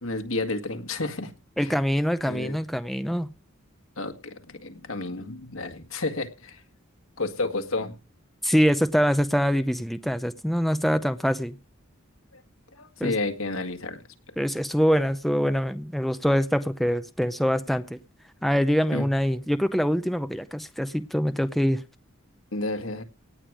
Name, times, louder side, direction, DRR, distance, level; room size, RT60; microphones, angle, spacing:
voice 1, 0.0-1.3 1.6-1.7 2.3-2.6 4.0-6.6 7.2-8.0 12.3-12.4 12.7-14.0 18.9-19.1 22.5-23.0, left 2 dB, 75° left, 1.9 m, -31 dB
voice 2, 1.6-3.3 8.4-11.6 13.0-13.1 14.4-18.0 18.4-21.8, equal, ahead, 0.6 m, -24 dB
18.0 x 8.8 x 5.0 m
head